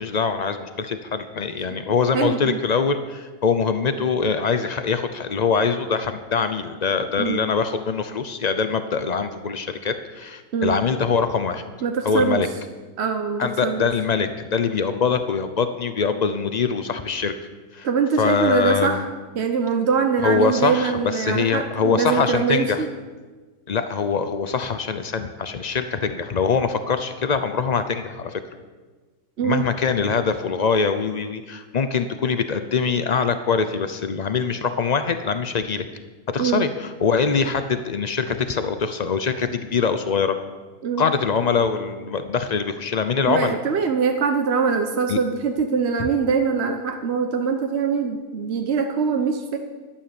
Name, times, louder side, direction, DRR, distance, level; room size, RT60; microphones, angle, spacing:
voice 1, 0.0-11.6 12.0-12.5 13.4-17.3 17.7-17.9 18.2-19.1 20.2-22.8 23.7-28.4 29.4-35.9 36.3-40.4 41.0-43.6 45.1-45.2, left 5 dB, 70° left, 9 dB, 0.4 m, -23 dB
voice 2, 2.1-2.6 7.2-7.5 10.5-10.8 11.8-12.4 13.0-13.9 17.8-19.1 19.3-22.9 29.4-29.6 36.4-36.7 40.8-41.0 43.2-49.6, right 5 dB, 50° right, 5 dB, 1.0 m, -23 dB
11.5 x 9.9 x 7.0 m, 1.3 s
omnidirectional pair, 1.7 m